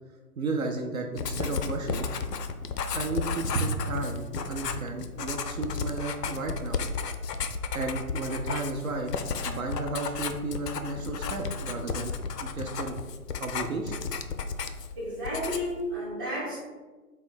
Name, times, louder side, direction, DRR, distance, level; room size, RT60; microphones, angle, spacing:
voice 1, 0.4-2.1 2.9-6.8 7.7-9.1 9.4-12.1 12.4-13.0 13.4-14.0, right 3 dB, 60° right, 2 dB, 0.5 m, -33 dB
Writing, 1.2-15.0 15.2-15.8, left 5 dB, 80° left, 0.6 m, -33 dB
voice 2, 15.0-16.6, equal, 15° right, -8 dB, 0.8 m, -32 dB
3.7 x 2.2 x 4.4 m, 1.3 s
figure-of-eight pair, 145°, 48 cm